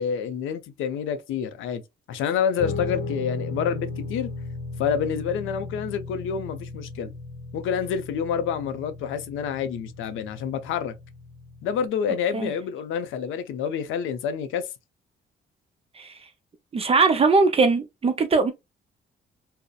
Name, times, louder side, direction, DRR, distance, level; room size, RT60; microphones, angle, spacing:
voice 1, 0.0-1.8 2.1-4.3 4.8-7.1 7.5-10.9 11.6-14.7, left 7 dB, 80° left, 0.5 m, -28 dB
Guitar, 2.6-11.9, left 3 dB, 55° left, 0.7 m, -36 dB
voice 2, 16.7-18.5, right 4 dB, 30° right, 0.6 m, -20 dB
2.6 x 2.0 x 2.3 m
cardioid pair, 90°, 20 cm